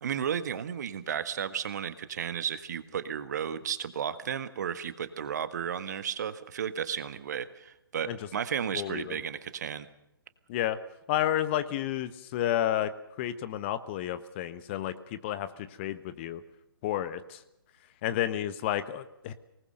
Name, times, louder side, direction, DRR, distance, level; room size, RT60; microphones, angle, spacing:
voice 1, 0.0-9.9, right 8 dB, 45° right, 12 dB, 1.6 m, -33 dB
voice 2, 8.7-9.2 10.5-10.8 11.1-12.9 13.2-16.4 16.8-17.4 18.0-19.3, left 12 dB, 30° left, 12 dB, 1.2 m, -31 dB
24.0 x 19.5 x 6.5 m, 0.84 s
figure-of-eight pair, 130°, 12 cm